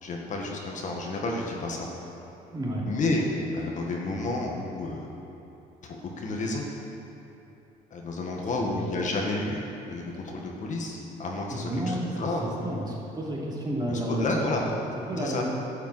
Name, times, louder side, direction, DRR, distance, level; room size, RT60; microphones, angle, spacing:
voice 1, 0.0-1.9 2.8-3.2 3.5-5.1 5.8-6.7 7.9-12.4 13.9-14.6 15.2-15.4, left 2 dB, 45° left, -1 dB, 1.7 m, -31 dB
voice 2, 2.5-2.9 8.6-8.8 11.5-14.6 15.1-15.4, right 1 dB, 25° right, -5 dB, 3.0 m, -31 dB
11.5 x 6.9 x 7.8 m, 2.8 s
cardioid pair, 110°, 17 cm